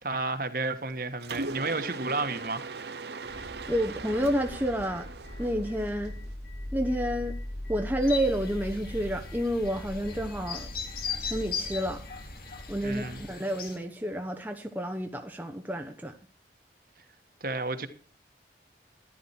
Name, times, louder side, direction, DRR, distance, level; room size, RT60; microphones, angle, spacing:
voice 1, 0.0-2.6 12.8-13.2 17.4-17.9, right 3 dB, 55° right, 1.6 m, -31 dB
Mechanisms, 1.2-6.3, right 3 dB, 70° right, 0.9 m, -39 dB
sound 1, 3.2-13.3, left 1 dB, 80° left, 5.3 m, -40 dB
voice 2, 3.7-5.1 5.4-6.1 6.7-7.3 7.7-10.7 11.2-12.0 12.7-16.1, equal, 10° right, 1.0 m, -30 dB
sound 2, 8.0-13.8, left 6 dB, 55° left, 2.5 m, -39 dB
14.0 x 11.0 x 4.6 m
head